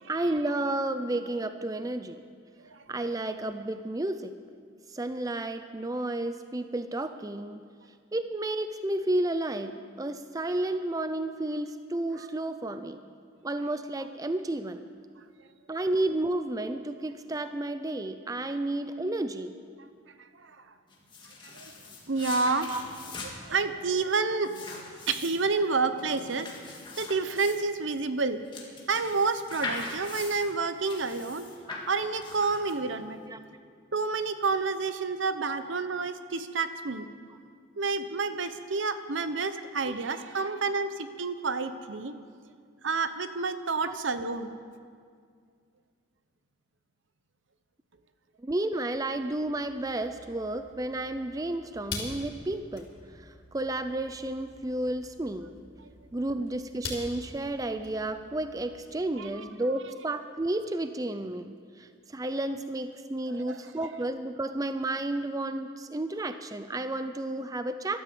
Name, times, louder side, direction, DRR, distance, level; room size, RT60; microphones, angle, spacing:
voice 1, 0.1-2.2 2.9-4.3 4.9-7.6 8.1-13.0 13.4-14.9 15.7-19.5 22.7-22.8 31.6-31.9 33.3-33.4 39.9-40.0 43.8-44.0 48.4-55.5 56.1-68.0, right 1 dB, 15° right, 10 dB, 0.4 m, -32 dB
sound 1, 20.9-33.0, left 3 dB, 25° left, 2.1 m, -42 dB
voice 2, 22.1-22.7 23.2-28.4 28.9-31.5 31.9-33.2 33.9-37.1 37.8-42.1 42.8-44.6 59.2-59.5 63.3-63.6, right 4 dB, 70° right, 11 dB, 0.9 m, -29 dB
sound 2, 48.9-59.4, left 3 dB, 75° left, 4.0 m, -45 dB
14.5 x 12.5 x 7.7 m, 2.1 s
head